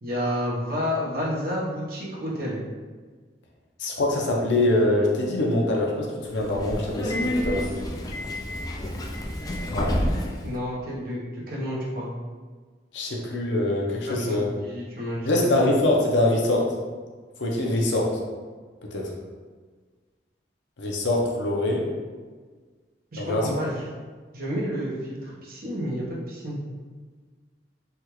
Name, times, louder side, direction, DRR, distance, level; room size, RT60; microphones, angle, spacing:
voice 1, 0.0-2.6 10.4-12.1 14.0-14.4 14.6-15.7 23.1-23.8 24.3-26.6, equal, 55° right, -5 dB, 0.8 m, -30 dB
voice 2, 3.8-7.7 9.7-9.9 12.9-14.5 15.2-16.7 17.4-18.1 18.9-19.1 20.8-21.9 23.2-23.5, left 1 dB, 90° left, -1 dB, 0.6 m, -24 dB
Subway metro underground, 6.2-10.5, equal, 20° left, 0.3 m, -29 dB
3.4 x 2.3 x 2.9 m, 1.5 s
head